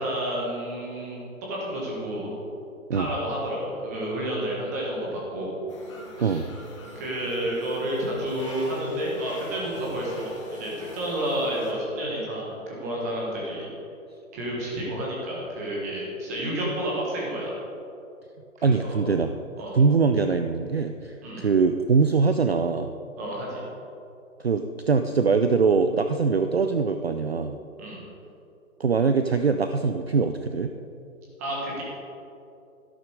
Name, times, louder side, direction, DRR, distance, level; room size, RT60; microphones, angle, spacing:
voice 1, 0.0-2.3 2.9-5.5 6.2-6.4 6.9-13.7 14.3-17.5 18.7-19.0 19.6-19.8 21.2-21.5 23.2-23.6 27.8-28.0 31.4-31.8, right 1 dB, 10° right, -4 dB, 1.5 m, -30 dB
sound 1, 5.7-11.7, left 2 dB, 20° left, 1.6 m, -43 dB
voice 2, 6.2-6.5 18.6-19.3 19.7-22.9 24.4-27.6 28.8-30.7, right 5 dB, 50° right, 8 dB, 0.5 m, -22 dB
12.5 x 11.0 x 4.7 m, 2.7 s
hypercardioid pair, 175°, 42 cm